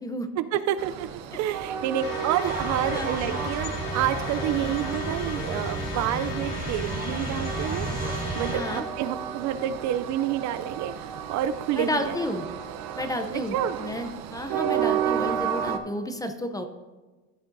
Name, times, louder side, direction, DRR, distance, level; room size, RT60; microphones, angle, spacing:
voice 1, 0.4-12.2 13.3-13.8, right 11 dB, 50° right, 13 dB, 0.4 m, -29 dB
Train, 0.8-15.8, right 9 dB, 70° right, 0.8 m, -33 dB
sound 1, 2.0-8.8, left 4 dB, 60° left, 1.2 m, -36 dB
sound 2, 2.4-8.6, right 3 dB, 25° right, 1.0 m, -33 dB
voice 2, 8.5-8.8 11.8-12.5 12.9-16.6, left 1 dB, 10° left, 8 dB, 0.5 m, -31 dB
14.0 x 7.1 x 2.6 m, 1.2 s
cardioid pair, 125°, 37 cm